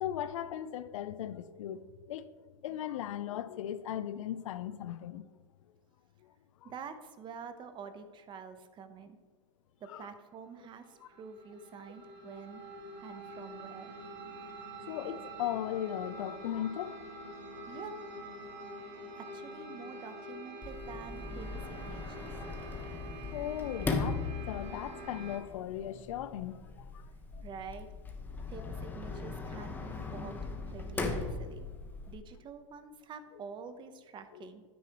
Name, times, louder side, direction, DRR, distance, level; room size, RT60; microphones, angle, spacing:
voice 1, 0.0-1.8 2.1-2.3 2.6-5.2 6.6-6.7 9.9-10.1 14.9-17.0 22.4-22.5 23.3-27.0 27.3-27.4, left 11 dB, 75° left, 0.6 m, -37 dB
voice 2, 6.6-9.2 9.8-12.6 13.0-13.9 17.7-18.0 19.1-22.3 27.4-27.9 28.5-30.4 30.7-31.7 32.1-34.6, right 6 dB, 30° right, 0.8 m, -47 dB
sound 1, 10.6-25.4, right 1 dB, 45° right, 2.8 m, -46 dB
Sliding door, 20.6-32.1, left 3 dB, 10° left, 1.1 m, -39 dB
9.4 x 9.3 x 3.0 m
hypercardioid pair, 125°, 17 cm